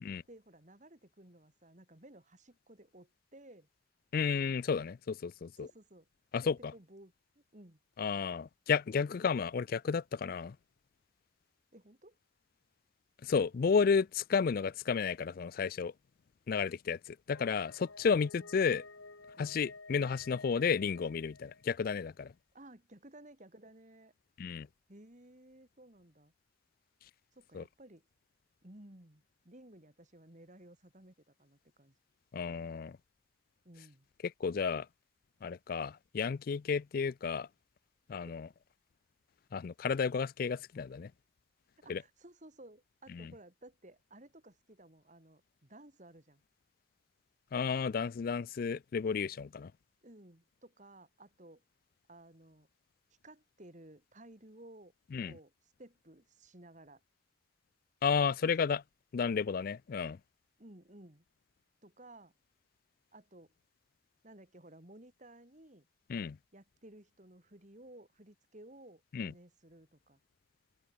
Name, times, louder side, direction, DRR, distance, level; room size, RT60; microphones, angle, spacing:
voice 1, 0.3-3.7 5.6-6.1 6.4-7.8 11.7-12.2 18.4-18.5 19.3-19.6 22.5-24.1 24.9-26.3 27.3-28.0 28.6-31.9 33.6-34.1 41.8-46.4 50.0-51.6 52.1-52.7 53.2-54.9 55.2-55.5 55.8-57.0 58.5-58.6 60.6-61.2 61.8-62.3 63.1-63.5 64.2-65.9 66.5-70.2, right 1 dB, 35° right, 2.6 m, -56 dB
voice 2, 4.1-5.7 6.3-6.7 8.0-10.6 13.2-15.9 16.5-18.8 19.4-22.3 24.4-24.7 27.5-27.6 32.3-33.0 34.2-34.9 35.4-37.5 38.1-38.5 39.5-41.1 41.9-42.0 43.1-43.3 47.5-49.7 55.1-55.3 58.0-58.8 59.1-60.2 66.1-66.4 69.1-69.3, left 5 dB, 45° left, 0.3 m, -32 dB
sound 1, 17.3-22.0, left 3 dB, 85° left, 7.4 m, -53 dB
open air
head